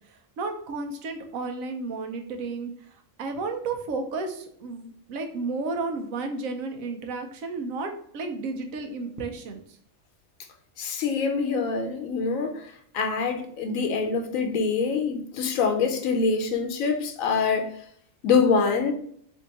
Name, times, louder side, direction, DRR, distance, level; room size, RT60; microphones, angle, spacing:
voice 1, 0.1-9.6, right 3 dB, 90° right, 5 dB, 1.1 m, -33 dB
voice 2, 10.8-17.7 18.2-18.9, left 5 dB, 90° left, 6 dB, 1.0 m, -25 dB
3.5 x 2.6 x 4.0 m, 0.63 s
omnidirectional pair, 1.4 m